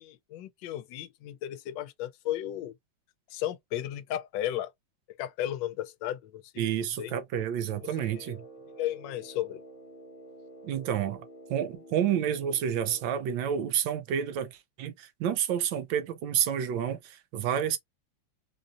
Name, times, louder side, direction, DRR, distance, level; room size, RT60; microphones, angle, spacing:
voice 1, 0.0-2.7 3.3-4.7 5.2-6.4 7.0-7.1 7.8-8.1 8.8-9.6, left 12 dB, 75° left, 1.2 m, -34 dB
voice 2, 6.6-8.4 10.6-11.2 11.5-17.8, right 9 dB, 75° right, 1.3 m, -29 dB
Brass instrument, 7.7-13.3, right 1 dB, 45° left, 0.7 m, -49 dB
3.8 x 2.6 x 2.4 m
omnidirectional pair, 2.1 m